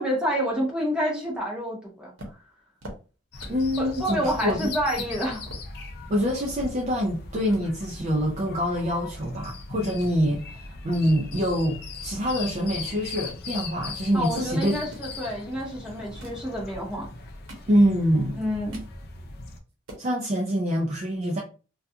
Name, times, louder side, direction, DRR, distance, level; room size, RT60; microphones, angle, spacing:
voice 1, 0.0-2.1 3.8-5.4 14.1-17.1 18.4-18.8, equal, 5° right, 0.8 m, -28 dB
sound 1, 2.2-3.7 4.1-4.2 4.5-4.7 5.2-7.2 7.5-7.6 8.4-9.5 9.8-10.2 10.7-12.4 12.8-14.1 14.7-15.1 16.0-16.5 17.1-18.1 18.4-19.0 19.4-19.5 19.7-20.1, right 1 dB, 80° right, 0.8 m, -45 dB
sound 2, 3.3-19.6, left 3 dB, 50° left, 0.4 m, -39 dB
voice 2, 3.5-4.7 6.1-14.8 17.7-18.4 20.0-21.4, equal, 35° right, 0.4 m, -25 dB
2.3 x 2.3 x 2.6 m
head